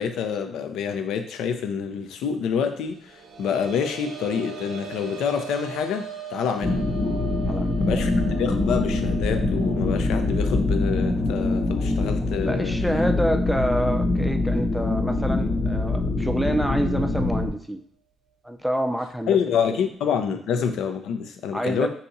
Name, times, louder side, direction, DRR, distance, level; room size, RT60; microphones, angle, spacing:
voice 1, 0.0-6.8 7.8-8.1 8.4-12.8 19.3-21.9, left 7 dB, 85° left, 7 dB, 0.4 m, -27 dB
sound 1, 2.9-14.3 14.7-14.8 16.3-16.4, right 7 dB, 75° right, 0.6 m, -40 dB
sound 2, 6.6-17.5, left 2 dB, 45° left, 0.6 m, -24 dB
voice 2, 7.4-8.0 12.4-17.8 18.4-19.4 21.5-21.9, equal, ahead, 6 dB, 0.4 m, -27 dB
2.8 x 2.4 x 4.0 m, 0.62 s
cardioid pair, 90°, 0 cm